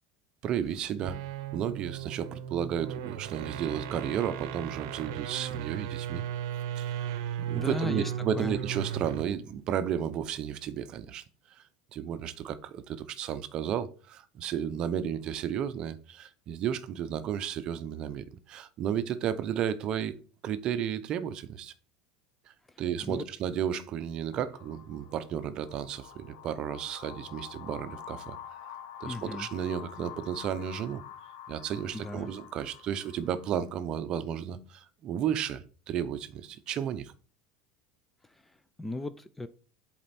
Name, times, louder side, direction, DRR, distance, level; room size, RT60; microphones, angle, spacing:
voice 1, 0.4-1.2 1.5-6.2 6.8-7.1 7.5-11.2 11.6-11.7 11.9-20.1 20.4-21.7 22.8-28.4 29.0-31.0 31.5-37.1, right 9 dB, 40° right, 0.6 m, -33 dB
sound 1, 0.9-9.4, right 9 dB, 80° right, 0.7 m, -36 dB
voice 2, 7.5-8.6 23.0-23.2 29.1-29.5 31.9-32.3 38.8-39.5, left 2 dB, 5° left, 0.4 m, -36 dB
sound 2, 24.3-33.8, left 9 dB, 85° left, 1.2 m, -47 dB
7.6 x 4.3 x 4.2 m
supercardioid pair, 145°, 2 cm